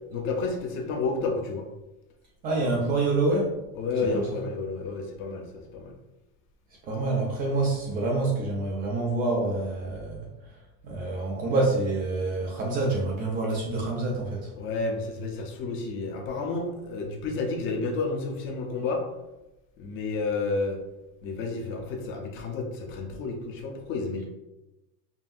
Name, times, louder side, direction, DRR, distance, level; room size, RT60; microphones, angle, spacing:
voice 1, 0.1-1.6 3.8-5.9 14.6-19.0 19.8-20.8 21.2-24.2, left 3 dB, 30° left, 3 dB, 0.5 m, -31 dB
voice 2, 2.4-3.5 4.1-4.3 6.8-10.3 10.8-14.5, right 2 dB, 25° right, -2 dB, 0.3 m, -27 dB
5.4 x 2.6 x 2.5 m, 0.97 s
supercardioid pair, 160°, 43 cm